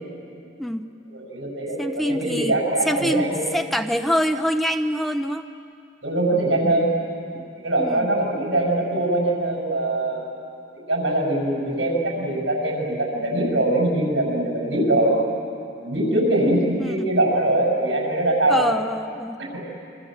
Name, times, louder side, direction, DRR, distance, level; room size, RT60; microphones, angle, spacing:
voice 1, 1.1-3.4 6.0-6.9 7.6-10.3 10.9-15.2 15.8-18.8 19.5-19.7, right 1 dB, 75° right, -2 dB, 7.3 m, -22 dB
voice 2, 1.8-2.6 2.9-5.5 7.4-7.5 7.8-8.1 16.8-17.1 18.5-19.4, equal, ahead, 7 dB, 0.6 m, -25 dB
27.0 x 25.0 x 7.9 m, 2.6 s
head